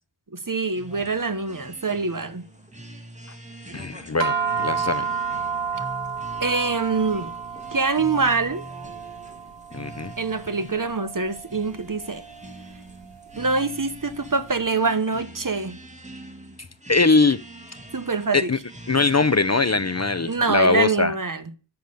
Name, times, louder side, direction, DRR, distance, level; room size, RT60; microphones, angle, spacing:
voice 1, 0.3-2.5 6.4-7.3 7.7-8.6 10.2-12.2 13.3-15.8 17.9-18.5 20.3-21.4, right 4 dB, 45° right, 1.0 m, -24 dB
sound 1, 0.7-20.4, right 1 dB, 15° right, 2.2 m, -44 dB
voice 2, 3.7-5.1 9.7-10.1 16.9-17.4 18.3-18.6 18.9-21.1, left 3 dB, 35° left, 0.6 m, -21 dB
sound 2, 4.2-14.7, right 6 dB, 65° right, 0.7 m, -32 dB
9.2 x 6.5 x 6.9 m
wide cardioid pair, 40°, 47 cm